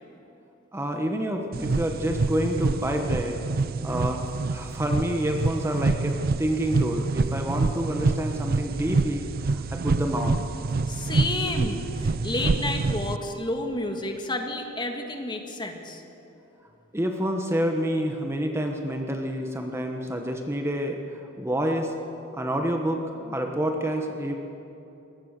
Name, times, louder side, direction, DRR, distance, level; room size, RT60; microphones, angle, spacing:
voice 1, 0.7-3.4 3.8-10.4 16.9-21.9 22.3-24.3, equal, 15° right, 3 dB, 1.1 m, -28 dB
sound 1, 1.5-13.2, right 3 dB, 50° right, 0.5 m, -27 dB
voice 2, 10.9-16.0, left 2 dB, 25° left, 4 dB, 1.8 m, -30 dB
22.0 x 18.0 x 6.7 m, 2.9 s
head